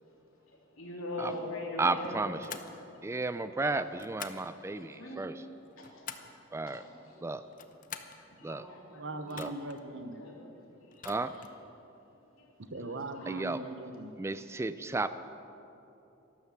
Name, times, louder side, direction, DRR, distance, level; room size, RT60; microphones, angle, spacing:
voice 1, 0.5-2.1 2.7-2.8 4.7-5.3 5.8-6.0 6.7-7.2 8.4-9.5 10.1-10.4 10.9-11.1 12.4-12.5 13.1-13.2, left 2 dB, 90° left, -2 dB, 3.2 m, -42 dB
voice 2, 1.8-2.4 3.0-5.4 6.5-6.8 7.2-7.4 8.4-8.7 9.4-9.5 11.0-11.4 13.3-13.6 14.2-15.1, right 3 dB, 15° right, 13 dB, 0.3 m, -33 dB
sound 1, 2.4-2.7 4.0-4.5 5.5-6.4 7.4-8.2 9.3-9.8 10.9-11.6, left 7 dB, 40° left, 0.8 m, -45 dB
voice 3, 9.0-10.2 12.6-14.1, right 2 dB, 65° right, 9 dB, 1.0 m, -40 dB
12.5 x 12.5 x 7.5 m, 2.9 s
head